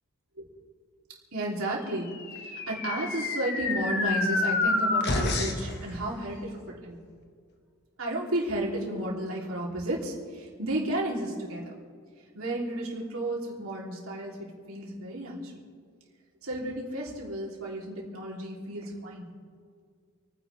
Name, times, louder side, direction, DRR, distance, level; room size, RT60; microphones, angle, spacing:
voice 1, 1.3-7.0 8.0-11.7 12.3-15.6 16.4-19.3, right 1 dB, 90° right, -3 dB, 3.5 m, -33 dB
sound 1, 2.1-5.7, left 3 dB, 55° left, 1.5 m, -28 dB
29.0 x 10.0 x 3.5 m, 2.1 s
head